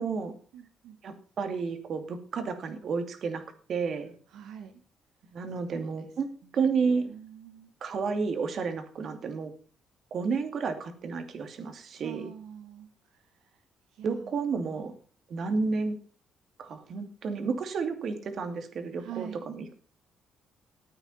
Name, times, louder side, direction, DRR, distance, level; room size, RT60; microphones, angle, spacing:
voice 1, 0.0-0.3 1.0-3.4 3.7-4.1 5.3-6.3 6.5-7.1 7.8-9.5 10.1-12.3 14.0-14.9 15.3-16.0 16.6-19.7, right 5 dB, 60° right, 8 dB, 2.6 m, -31 dB
voice 2, 0.5-1.0 4.3-4.7 5.7-5.9 7.1-7.7 12.0-12.9 13.1-13.2 13.9-14.3 19.0-19.4, right 10 dB, 90° right, 5 dB, 1.5 m, -44 dB
14.0 x 9.2 x 5.6 m, 0.41 s
cardioid pair, 90°, 0 cm